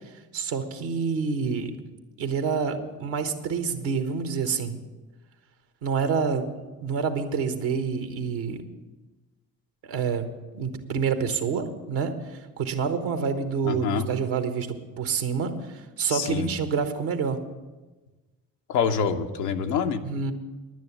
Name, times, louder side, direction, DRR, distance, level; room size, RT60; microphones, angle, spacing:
voice 1, 0.3-1.7 2.2-4.8 5.8-6.5 6.8-8.6 9.8-10.2 10.5-12.1 12.6-15.5 16.0-17.4 20.0-20.3, right 5 dB, 70° right, 8 dB, 1.3 m, -27 dB
voice 2, 13.6-14.1 16.1-16.5 18.7-20.0, left 6 dB, 90° left, 5 dB, 0.7 m, -26 dB
10.5 x 9.3 x 7.2 m, 1.2 s
hypercardioid pair, 45°, 47 cm